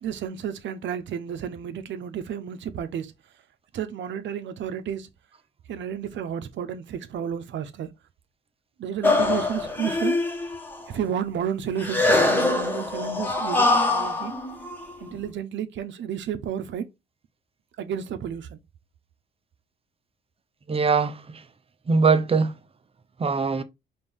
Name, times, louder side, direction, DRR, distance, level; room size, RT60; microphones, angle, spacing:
voice 1, 0.0-3.1 3.7-5.1 5.7-7.9 8.8-10.2 10.9-14.3 15.0-16.8 17.8-18.6, right 8 dB, 70° right, 0.8 m, -31 dB
sound 1, 9.0-10.8 11.8-15.2, left 2 dB, 10° left, 1.2 m, -23 dB
voice 2, 20.7-21.4 21.9-22.5 23.2-23.6, right 4 dB, 30° right, 0.6 m, -22 dB
5.3 x 2.6 x 3.5 m
cardioid pair, 90°, 20 cm